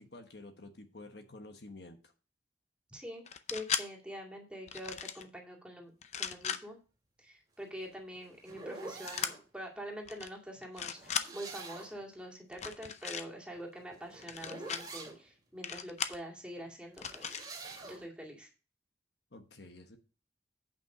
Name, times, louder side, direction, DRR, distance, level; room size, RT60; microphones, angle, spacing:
voice 1, 0.0-2.0 19.3-20.0, left 2 dB, 70° left, 6 dB, 1.2 m, -50 dB
voice 2, 2.9-3.2 3.5-5.9 6.2-6.8 7.2-17.4 17.8-18.5, equal, 5° right, -1 dB, 2.2 m, -45 dB
sound 1, 3.3-3.8 4.7-5.2 6.0-6.6 9.1-9.3 10.1-10.3 10.6-11.3 12.5-13.2 14.2-14.8 15.6-16.2 17.0-17.4, left 8 dB, 40° left, 0.6 m, -37 dB
sound 2, 7.6-9.4 10.9-12.0 13.5-15.2 16.9-18.0, right 3 dB, 25° right, 2.4 m, -46 dB
8.9 x 5.5 x 4.9 m, 0.34 s
head